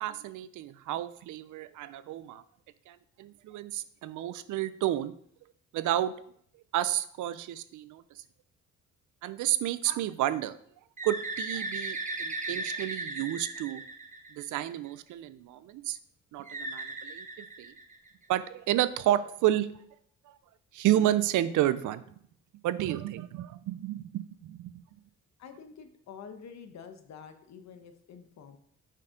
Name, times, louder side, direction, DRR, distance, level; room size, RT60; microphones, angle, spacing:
voice 1, 0.0-2.4 2.9-5.1 5.7-6.1 6.7-8.2 9.2-10.5 11.0-13.8 14.3-16.0 16.3-17.7 18.3-19.7 20.3-20.4 20.7-22.0 22.6-24.7, right 13 dB, 80° right, 14 dB, 0.6 m, -31 dB
Bird, 11.0-14.7 16.5-18.2, right 2 dB, 25° right, 1.1 m, -37 dB
voice 2, 25.4-28.6, left 6 dB, 65° left, 7 dB, 1.1 m, -48 dB
7.2 x 4.5 x 5.1 m, 0.64 s
cardioid pair, 90°, 30 cm